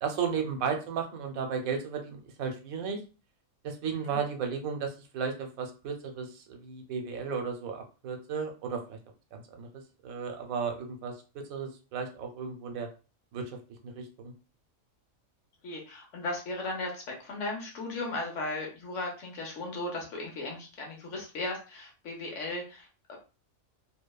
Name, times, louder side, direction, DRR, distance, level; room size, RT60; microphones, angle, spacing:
voice 1, 0.0-3.0 3.6-9.0 9.3-11.2 11.5-12.9 13.3-13.4 13.8-14.3, right 6 dB, 80° right, 4 dB, 1.0 m, -34 dB
voice 2, 15.6-23.2, left 2 dB, 65° left, 0 dB, 1.1 m, -36 dB
2.8 x 2.1 x 2.2 m, 0.33 s
omnidirectional pair, 1.4 m